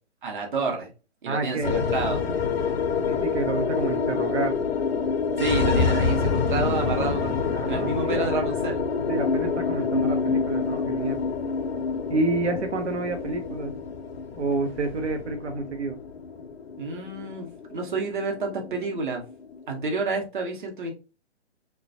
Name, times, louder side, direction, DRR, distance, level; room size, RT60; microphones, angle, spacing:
voice 1, 0.2-0.9 1.2-2.2 5.4-8.8 16.8-19.2 19.7-20.9, right 3 dB, 45° right, 2 dB, 0.9 m, -29 dB
voice 2, 1.3-1.8 3.1-4.6 7.5-8.6 9.1-11.2 12.1-13.7 14.3-16.0, right 3 dB, 75° right, 6 dB, 0.7 m, -29 dB
sound 1, 1.6-20.0, left 5 dB, 60° left, 0.5 m, -27 dB
3.2 x 2.3 x 2.6 m, 0.32 s
figure-of-eight pair, 130°, 35 cm